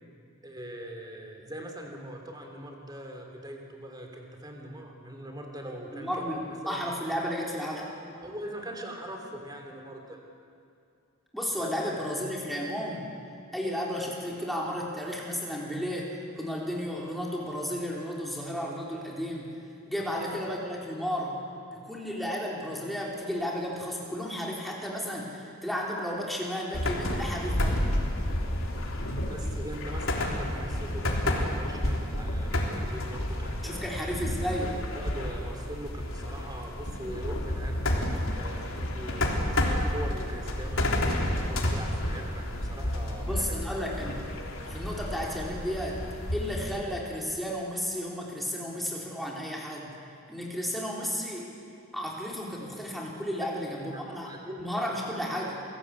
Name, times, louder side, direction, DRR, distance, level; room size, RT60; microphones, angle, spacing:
voice 1, 0.4-6.9 8.2-10.2 11.6-11.7 29.3-33.9 34.9-39.5 39.9-43.4 53.7-54.6, right 1 dB, 20° right, 2 dB, 3.1 m, -41 dB
voice 2, 5.9-7.9 11.3-13.1 13.5-19.5 19.9-21.4 21.7-27.9 33.6-34.8 43.3-44.3 44.7-46.0 46.3-49.9 50.3-51.5 51.9-54.3 54.6-55.6, equal, ahead, -3 dB, 3.8 m, -33 dB
sound 1, 26.7-46.7, left 1 dB, 70° left, 3.6 m, -30 dB
27.5 x 18.0 x 8.5 m, 2.4 s
head